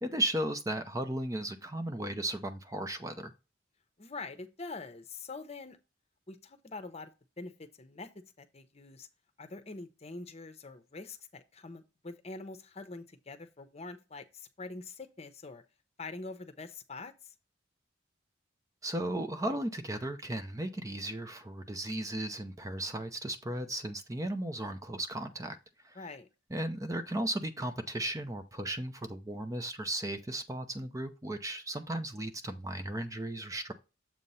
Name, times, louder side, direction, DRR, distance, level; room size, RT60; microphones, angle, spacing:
voice 1, 0.0-3.3 18.8-25.6 25.8-26.0 26.5-33.7, right 1 dB, 15° right, 0.6 m, -35 dB
voice 2, 4.0-5.8 6.3-8.1 8.4-9.1 9.4-15.6 16.0-17.3 25.9-26.3, left 3 dB, 35° left, 0.8 m, -45 dB
7.5 x 3.0 x 5.4 m
head